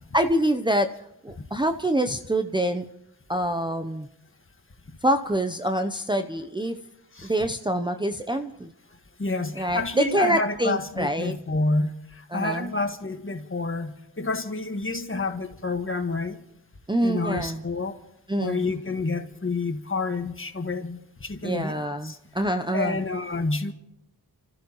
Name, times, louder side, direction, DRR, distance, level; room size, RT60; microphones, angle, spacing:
voice 1, 0.1-0.9 1.2-2.8 3.3-4.1 5.0-6.8 7.2-8.7 9.6-11.3 12.3-12.7 16.9-17.6 18.3-18.6 21.4-23.0, right 1 dB, 10° right, 5 dB, 0.7 m, -25 dB
voice 2, 9.2-16.4 17.0-17.9 18.4-22.2 22.7-23.7, left 3 dB, 30° left, 6 dB, 1.6 m, -29 dB
30.0 x 14.5 x 3.1 m, 0.80 s
cardioid pair, 55°, 39 cm